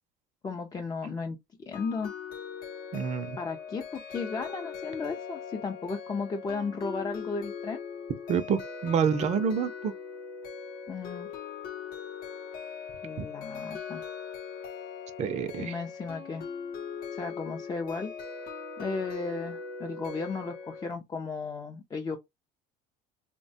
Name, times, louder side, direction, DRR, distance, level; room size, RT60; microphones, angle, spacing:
voice 1, 0.4-1.4 1.7-2.1 3.4-7.8 10.9-11.3 13.0-14.1 15.6-16.5 17.1-18.1 18.8-22.2, left 4 dB, 20° left, 0.4 m, -35 dB
sound 1, 1.7-20.9, left 6 dB, 60° left, 0.7 m, -40 dB
voice 2, 2.9-3.4 8.3-9.9 13.2-13.3 15.2-15.7, right 7 dB, 40° right, 0.5 m, -28 dB
3.1 x 2.1 x 2.6 m
cardioid pair, 115°, 18 cm